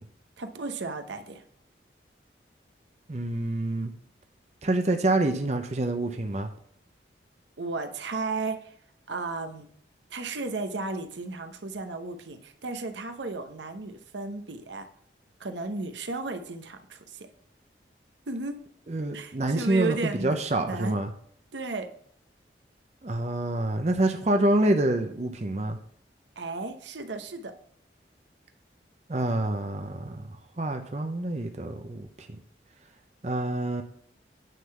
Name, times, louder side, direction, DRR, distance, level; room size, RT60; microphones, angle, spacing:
voice 1, 0.4-1.4 7.6-8.7 9.1-9.7 10.1-14.9 15.4-17.3 18.3-18.6 19.1-20.4 20.7-21.0 21.5-21.9 26.4-27.5, right 3 dB, 85° right, 7 dB, 0.9 m, -34 dB
voice 2, 3.1-3.9 4.6-6.5 18.9-20.0 20.2-21.1 23.0-25.8 29.1-32.1 33.2-33.8, right 2 dB, 40° right, 6 dB, 0.7 m, -27 dB
9.3 x 3.8 x 6.9 m, 0.64 s
head